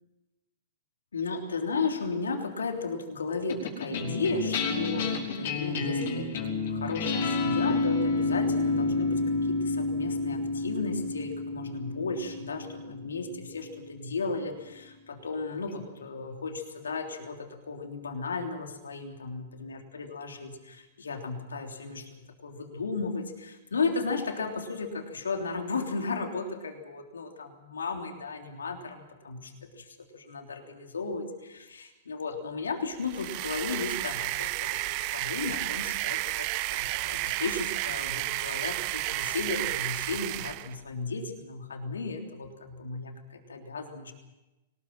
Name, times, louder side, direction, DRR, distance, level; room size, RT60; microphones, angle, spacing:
voice 1, 1.1-44.1, left 4 dB, 80° left, 3 dB, 3.4 m, -35 dB
sound 1, 3.5-14.1, left 3 dB, 60° left, 5.5 m, -30 dB
sound 2, 33.0-40.7, right 19 dB, 45° right, 0.8 m, -32 dB
23.5 x 20.0 x 7.5 m, 1.0 s
hypercardioid pair, 110°, 0 cm